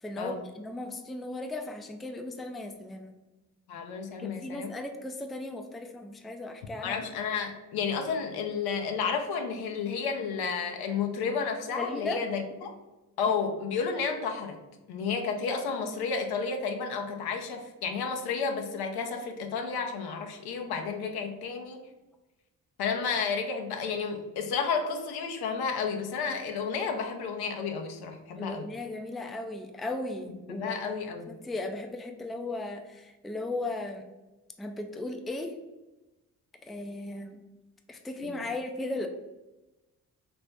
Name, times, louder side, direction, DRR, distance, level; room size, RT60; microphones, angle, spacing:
voice 1, 0.0-3.1 4.1-7.0 11.8-12.2 28.3-30.8 31.3-34.1 34.6-35.6 36.6-37.4 37.9-39.1, left 2 dB, ahead, 5 dB, 0.3 m, -36 dB
voice 2, 3.7-4.8 6.8-12.7 13.2-14.6 14.9-21.9 22.8-28.7 30.5-31.3 38.2-38.4, left 5 dB, 75° left, 4 dB, 0.6 m, -31 dB
2.9 x 2.6 x 3.3 m, 1.0 s
hypercardioid pair, 45°, 38 cm